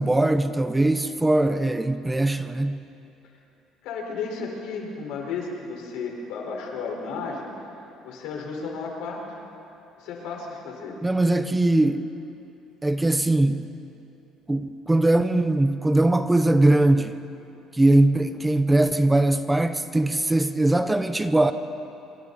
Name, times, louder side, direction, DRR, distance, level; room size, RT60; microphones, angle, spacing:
voice 1, 0.0-2.8 11.0-12.1 12.8-13.7 14.5-17.2 17.7-21.5, right 2 dB, 10° right, 0.6 m, -21 dB
voice 2, 3.8-7.5 8.0-9.2 10.0-11.0, left 4 dB, 80° left, 4.6 m, -33 dB
25.5 x 25.5 x 4.1 m
cardioid pair, 150°, 0 cm